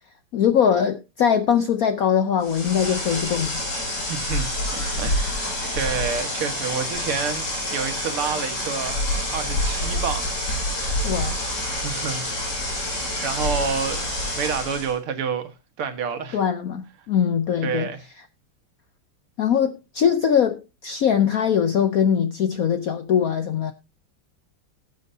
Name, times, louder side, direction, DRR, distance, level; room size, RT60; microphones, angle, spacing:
voice 1, 0.3-3.6 11.0-11.4 16.3-17.9 19.4-23.7, left 8 dB, 75° left, 0.8 m, -21 dB
sound 1, 2.4-14.9, left 1 dB, 50° left, 6.2 m, -27 dB
voice 2, 4.1-9.0 9.3-10.3 11.7-12.6 13.2-14.1 14.4-15.5 15.8-16.4 17.6-18.0, right 6 dB, 80° right, 2.3 m, -29 dB
18.0 x 8.1 x 2.7 m
omnidirectional pair, 2.4 m